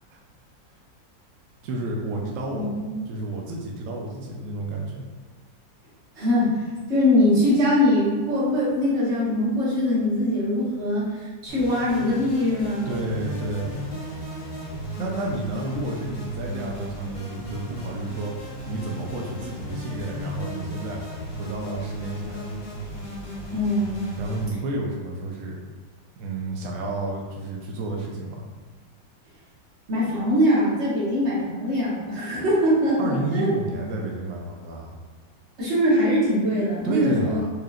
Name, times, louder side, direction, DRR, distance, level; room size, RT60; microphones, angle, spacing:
voice 1, 1.6-2.7 3.1-5.0 12.9-13.8 15.0-21.0 21.3-22.5 24.2-25.6 26.2-28.5 33.0-34.9 36.8-37.5, right 2 dB, 85° right, -1 dB, 0.7 m, -30 dB
voice 2, 2.5-2.9 6.2-6.6 6.9-13.0 23.5-24.0 29.9-33.5 35.6-37.5, left 1 dB, 40° right, -8 dB, 1.4 m, -22 dB
sound 1, 11.5-24.4, equal, 40° left, 1.0 m, -35 dB
4.9 x 2.8 x 2.4 m, 1.5 s
omnidirectional pair, 2.0 m